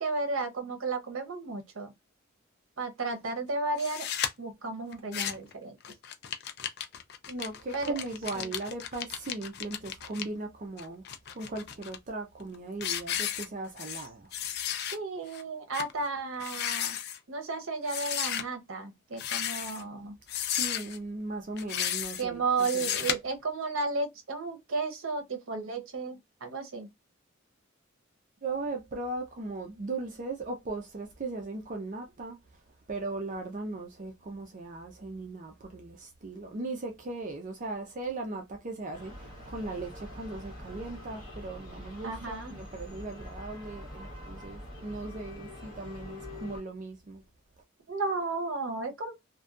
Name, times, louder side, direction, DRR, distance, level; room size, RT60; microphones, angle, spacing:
voice 1, 0.0-1.9 2.8-4.1 4.4-5.8 7.7-7.9 8.3-8.5 14.8-17.0 17.3-20.2 22.2-26.9 42.0-42.7 47.9-49.1, right 3 dB, 75° right, 0.7 m, -33 dB
sound 1, 3.8-4.3 4.9-5.5 5.8-10.2 10.8-12.0 12.4-12.5 12.8-14.1 14.3-15.0 15.3-15.4 15.7-15.9 16.3-17.2 17.9-18.4 19.1-19.8 20.3-21.0 21.6-22.2 22.6-23.1, left 10 dB, 50° left, 0.3 m, -34 dB
voice 2, 7.3-11.0 11.3-14.3 20.6-22.4 22.7-23.1 28.4-32.4 32.9-47.2, right 2 dB, 40° right, 0.4 m, -38 dB
sound 2, 38.9-46.6, left 1 dB, 20° left, 1.2 m, -44 dB
2.6 x 2.1 x 2.3 m
head